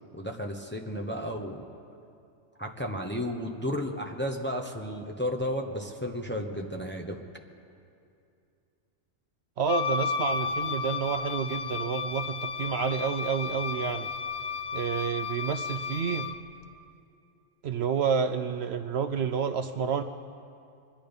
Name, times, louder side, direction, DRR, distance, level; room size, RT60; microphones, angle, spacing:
voice 1, 0.1-1.6 2.6-7.2, equal, 10° left, 2 dB, 0.8 m, -33 dB
voice 2, 9.6-14.1 14.7-16.3 17.6-20.0, right 6 dB, 65° right, 9 dB, 0.7 m, -29 dB
Wind instrument woodwind instrument, 9.7-16.4, left 5 dB, 85° left, 0.3 m, -33 dB
25.0 x 10.0 x 5.3 m, 2.5 s
omnidirectional pair, 1.3 m